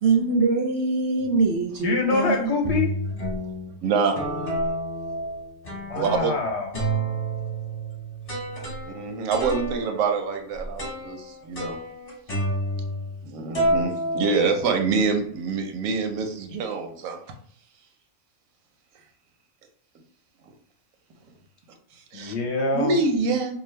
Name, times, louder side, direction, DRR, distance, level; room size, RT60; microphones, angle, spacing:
voice 1, 0.0-2.5, right 4 dB, 65° right, 2 dB, 0.7 m, -23 dB
sound 1, 1.2-1.6 2.2-2.3 2.6-3.7 4.2-6.4 6.7-13.3 13.5-14.9, right 1 dB, 30° left, 0.9 m, -30 dB
voice 2, 1.8-2.9 5.9-6.7 22.1-23.0, left 3 dB, 65° left, 2 dB, 0.8 m, -25 dB
voice 3, 3.8-4.1 5.9-6.3 8.8-11.8 13.2-17.2 22.1-22.3 22.7-23.6, right 4 dB, 90° right, 4 dB, 1.0 m, -25 dB
2.6 x 2.4 x 3.1 m, 0.62 s
omnidirectional pair, 1.4 m